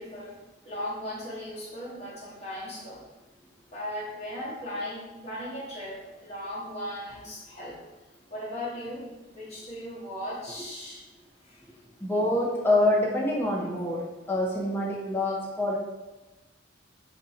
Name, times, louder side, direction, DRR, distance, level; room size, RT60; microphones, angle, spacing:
voice 1, 0.0-3.0 3.7-7.8 8.3-11.0 11.4-11.6, left 1 dB, 35° left, -8 dB, 1.0 m, -37 dB
voice 2, 12.0-15.8, left 1 dB, 10° left, -3 dB, 0.6 m, -26 dB
3.6 x 2.6 x 4.1 m, 1.1 s
head